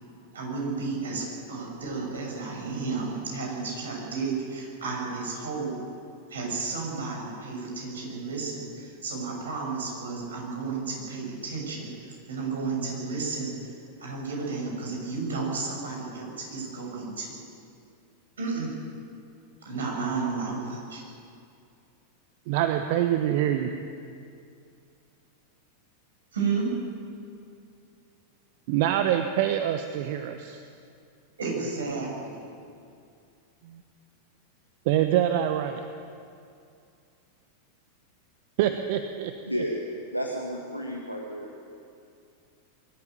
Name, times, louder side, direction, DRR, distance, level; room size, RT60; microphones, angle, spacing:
voice 1, 0.3-5.9 6.3-13.7 14.0-17.3 18.4-18.7 19.6-21.0 26.3-26.7 31.4-32.4, right 4 dB, 65° right, -1 dB, 6.5 m, -32 dB
voice 2, 22.5-23.7 28.7-30.6 33.6-33.8 34.9-35.8 38.6-39.3, right 11 dB, 50° right, 7 dB, 1.0 m, -25 dB
voice 3, 39.5-39.8 40.1-41.5, equal, 90° right, 0 dB, 1.8 m, -32 dB
22.5 x 13.0 x 9.2 m, 2.4 s
figure-of-eight pair, 90°, 0 cm